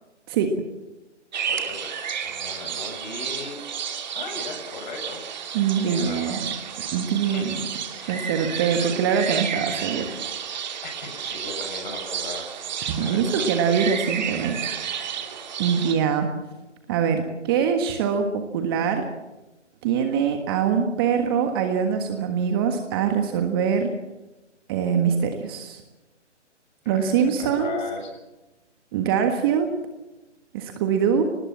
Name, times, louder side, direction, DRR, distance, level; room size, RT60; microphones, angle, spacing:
sound 1, 1.3-15.9, right 8 dB, 40° right, 2.5 m, -32 dB
voice 1, 1.5-3.6 4.1-5.2 5.8-6.4 7.2-7.6 8.0-8.4 10.8-12.5 13.0-13.5 26.8-28.2, left 4 dB, 40° left, 4 dB, 7.6 m, -37 dB
voice 2, 5.5-6.4 6.9-7.6 8.1-10.2 12.8-14.7 15.6-16.3 16.9-19.1 19.8-23.9 24.7-25.8 26.8-27.8 28.9-29.7 30.5-31.2, right 7 dB, 20° right, 6 dB, 1.5 m, -23 dB
24.0 x 19.5 x 7.4 m, 1.0 s
figure-of-eight pair, 145°, 36 cm